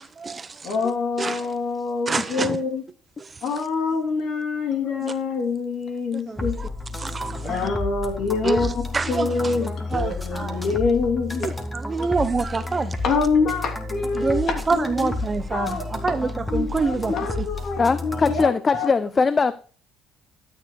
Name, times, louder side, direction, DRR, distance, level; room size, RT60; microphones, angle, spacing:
voice 1, 0.0-0.7 1.2-1.4 2.1-2.6 3.2-3.3 5.0-5.1 6.3-6.7 7.0-7.6 8.4-9.6 9.9-10.6 11.4-12.9 14.1-17.4, right 4 dB, 25° right, 0.9 m, -27 dB
voice 2, 0.6-2.8 3.4-6.6 7.4-11.5 13.0-15.1 15.5-15.9 16.5-18.9, left 4 dB, 60° left, 3.0 m, -26 dB
sound 1, 6.4-18.4, left 2 dB, 10° left, 1.9 m, -31 dB
voice 3, 17.8-19.5, left 4 dB, 30° left, 0.6 m, -20 dB
13.0 x 9.2 x 2.3 m
cardioid pair, 95°, 0 cm